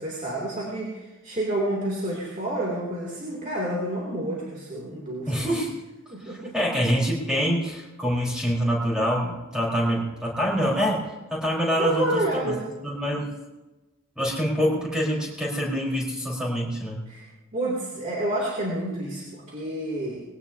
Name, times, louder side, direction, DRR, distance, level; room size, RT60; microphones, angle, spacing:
voice 1, 0.0-5.4 6.1-6.7 11.8-12.7 17.1-17.3 17.5-20.2, right 1 dB, 35° right, -4 dB, 2.7 m, -29 dB
voice 2, 5.3-5.7 6.2-11.0 11.3-12.2 12.8-13.3 14.2-17.0, equal, 5° right, -4 dB, 4.2 m, -25 dB
20.5 x 17.5 x 2.8 m, 1.1 s
head